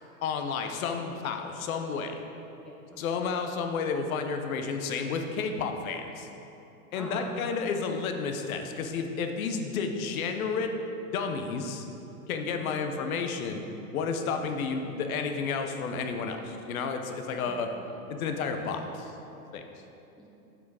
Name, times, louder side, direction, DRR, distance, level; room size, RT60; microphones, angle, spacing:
voice 1, 0.2-2.1 3.0-6.3 6.9-10.7 11.1-11.8 12.3-13.6 13.9-17.7 18.1-19.1 19.5-19.6, left 5 dB, 70° left, 5 dB, 0.9 m, -31 dB
voice 2, 2.6-3.0 6.9-7.4 12.6-13.1 17.5-18.0 20.2-20.3, left 1 dB, ahead, -4 dB, 0.5 m, -45 dB
7.1 x 6.0 x 4.9 m, 3.0 s
hypercardioid pair, 140°, 44 cm